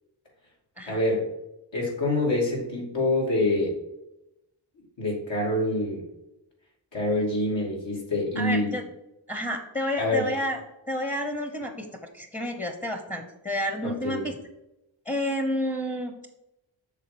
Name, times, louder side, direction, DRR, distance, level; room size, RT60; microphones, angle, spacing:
voice 1, 0.9-1.3 1.7-3.7 5.0-6.0 6.9-8.7 10.0-10.3 13.8-14.2, left 2 dB, 65° left, -2 dB, 2.6 m, -26 dB
voice 2, 8.4-8.8 9.3-10.6 10.9-11.9 12.1-14.3 15.1-16.1, equal, 15° left, 5 dB, 1.0 m, -30 dB
6.6 x 3.8 x 5.1 m, 0.91 s
cardioid pair, 50°, 47 cm